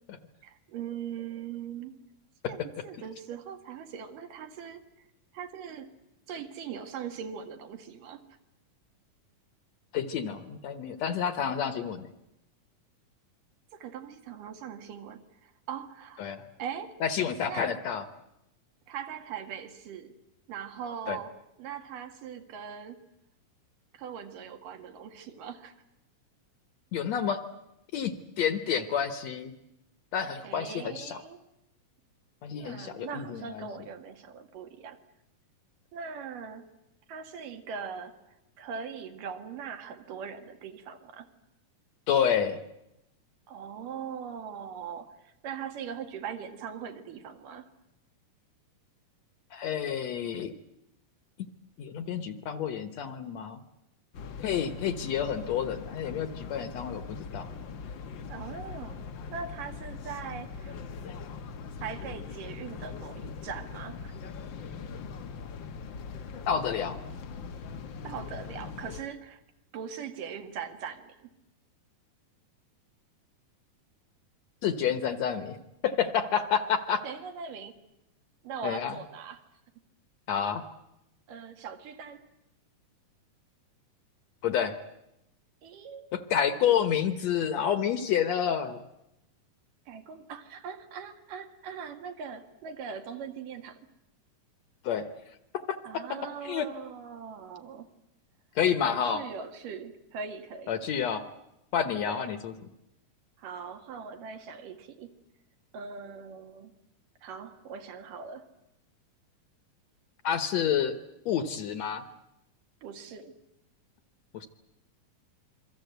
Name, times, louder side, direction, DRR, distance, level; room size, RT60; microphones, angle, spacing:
voice 1, 0.4-2.0 2.5-4.8 5.3-5.9 6.3-8.2 13.7-17.0 17.5-17.8 18.9-20.1 20.5-23.0 23.9-25.8 30.4-31.4 32.6-35.0 35.9-36.7 37.1-41.3 43.5-47.7 58.3-60.8 61.8-64.1 68.0-69.4 69.7-71.3 77.0-77.8 78.4-79.4 81.3-82.3 85.6-86.1 89.9-93.8 95.9-97.9 98.8-100.8 102.1-102.3 103.4-105.2 105.7-106.7 107.2-108.5 112.8-113.4, right 7 dB, 75° right, 6 dB, 3.5 m, -41 dB
voice 2, 9.9-12.1 16.2-16.4 17.0-18.0 21.1-21.2 26.9-27.4 27.9-29.5 30.1-31.2 32.4-33.7 42.1-42.6 49.5-50.5 51.8-53.6 54.4-57.5 66.5-67.0 74.6-75.6 75.8-77.0 78.6-78.9 80.3-80.7 84.4-84.8 86.1-88.8 94.8-95.1 95.5-96.0 96.4-96.7 98.6-99.2 100.7-101.3 101.7-102.5 110.2-110.9 111.3-112.0 114.3-114.5, left 8 dB, 65° left, 10 dB, 2.0 m, -29 dB
sound 1, 54.1-69.0, left 5 dB, 80° left, 1.0 m, -41 dB
27.5 x 23.5 x 8.1 m, 0.89 s
omnidirectional pair, 3.9 m